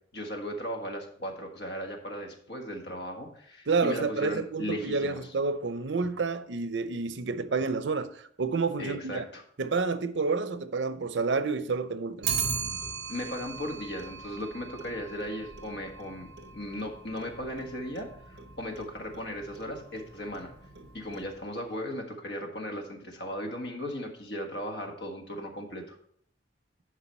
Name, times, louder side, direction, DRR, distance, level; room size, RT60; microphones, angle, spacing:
voice 1, 0.1-5.2 8.8-9.4 13.1-20.5 20.9-26.0, equal, 65° left, 1.7 m, -37 dB
voice 2, 3.7-9.2 9.6-12.3, right 4 dB, 85° right, 0.7 m, -29 dB
Clock, 12.2-21.6, right 6 dB, 60° right, 1.0 m, -39 dB
11.0 x 4.8 x 4.4 m
head